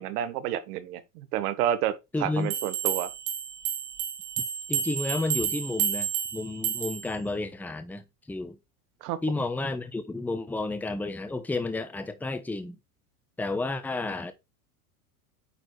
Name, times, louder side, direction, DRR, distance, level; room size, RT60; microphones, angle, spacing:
voice 1, 0.0-3.1 9.0-9.2, right 11 dB, 70° right, 1.3 m, -29 dB
voice 2, 2.1-2.5 4.7-8.5 9.2-12.8 13.4-14.3, left 2 dB, 5° left, 0.7 m, -31 dB
sound 1, 2.5-7.1, right 9 dB, 45° right, 1.6 m, -31 dB
9.2 x 4.1 x 3.2 m
hypercardioid pair, 100°, 48 cm